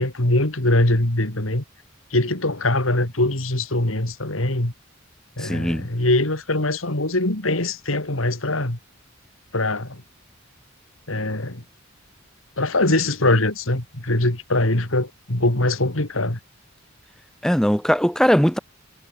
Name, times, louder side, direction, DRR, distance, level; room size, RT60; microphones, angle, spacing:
voice 1, 0.0-1.6 2.1-4.7 5.4-8.8 9.5-10.0 11.1-11.6 12.6-16.4, left 2 dB, 85° left, 3.5 m, -22 dB
voice 2, 5.4-5.9 17.4-18.6, equal, 5° left, 2.0 m, -19 dB
head